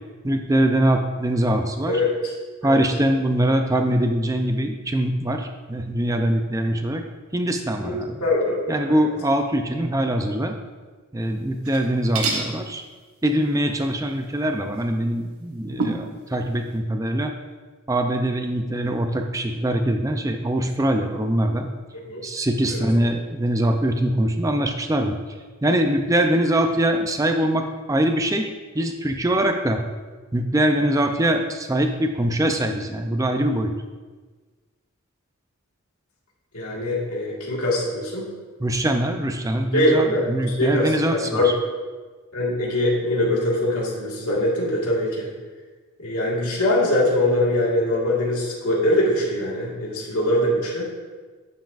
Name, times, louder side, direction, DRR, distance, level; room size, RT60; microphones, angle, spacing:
voice 1, 0.2-2.0 2.6-7.0 7.3-8.2 8.7-10.5 11.1-12.8 13.2-17.3 17.9-21.7 22.2-25.2 25.6-28.5 28.7-29.8 30.3-33.7 38.6-41.5, right 1 dB, 15° right, 5 dB, 0.5 m, -23 dB
voice 2, 7.8-9.0 22.1-22.2 22.7-22.9 36.5-38.3 39.7-41.5 42.3-45.3 46.0-50.9, left 1 dB, 85° left, -4 dB, 1.8 m, -22 dB
sound 1, 11.5-11.9 12.2-12.5 14.8-14.9 15.8-16.1, right 3 dB, 80° right, 1.1 m, -26 dB
8.9 x 7.5 x 2.5 m, 1.4 s
head